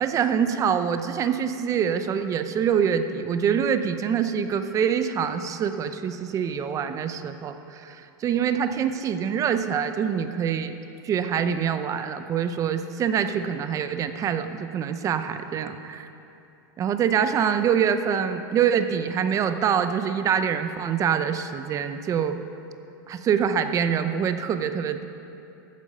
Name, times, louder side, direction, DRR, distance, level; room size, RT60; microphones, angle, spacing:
voice 1, 0.0-10.8 11.0-16.1 16.8-22.4 23.1-25.0, right 8 dB, 30° right, 9 dB, 0.7 m, -25 dB
14.5 x 8.6 x 5.5 m, 2.8 s
supercardioid pair, 130°, 11 cm